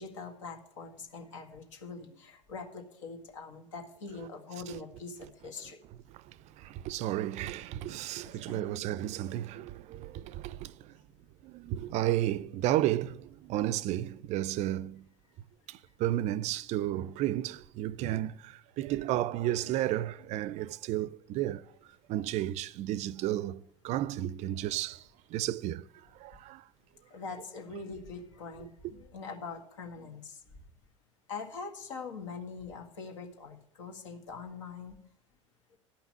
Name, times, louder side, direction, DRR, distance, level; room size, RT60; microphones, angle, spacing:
voice 1, 0.0-5.8 8.5-8.7 13.6-13.7 27.1-30.4 31.3-35.0, left 4 dB, 75° left, 1.9 m, -43 dB
voice 2, 6.6-10.7 11.4-15.0 15.7-21.6 22.1-25.0 25.3-25.9 26.2-26.6, right 13 dB, 45° right, 0.4 m, -32 dB
11.5 x 5.7 x 8.5 m
hypercardioid pair, 80°, 16 cm